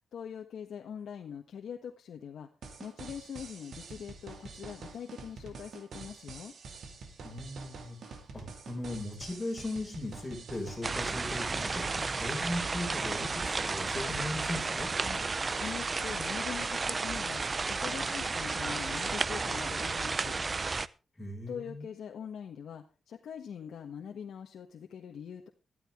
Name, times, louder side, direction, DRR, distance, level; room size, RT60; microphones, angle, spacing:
voice 1, 0.1-2.5 2.8-6.5 15.0-15.2 15.6-20.4 21.5-25.5, left 8 dB, 80° left, 3 dB, 1.4 m, -43 dB
sound 1, 2.6-14.3, right 4 dB, 65° right, 2.4 m, -47 dB
voice 2, 7.2-14.9 21.2-21.9, left 1 dB, 15° left, 1 dB, 6.0 m, -38 dB
sound 2, 10.8-20.9, right 4 dB, 30° right, 0.6 m, -33 dB
14.0 x 12.5 x 3.6 m, 0.31 s
wide cardioid pair, 130°, 0 cm